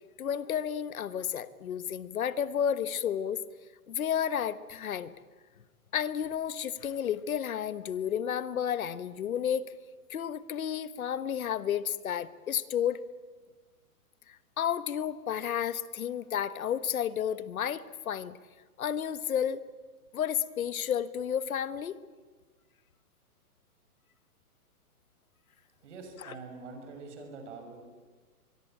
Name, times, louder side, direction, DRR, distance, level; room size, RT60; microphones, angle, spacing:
voice 1, 0.2-3.4 3.9-5.1 5.9-9.7 10.1-13.0 14.3-18.4 18.8-19.6 20.1-22.0 26.2-26.3, left 9 dB, 65° left, 14 dB, 1.4 m, -31 dB
voice 2, 25.8-27.8, right 4 dB, 50° right, 5 dB, 6.1 m, -45 dB
23.5 x 22.5 x 8.8 m, 1.4 s
hypercardioid pair, 165°, 46 cm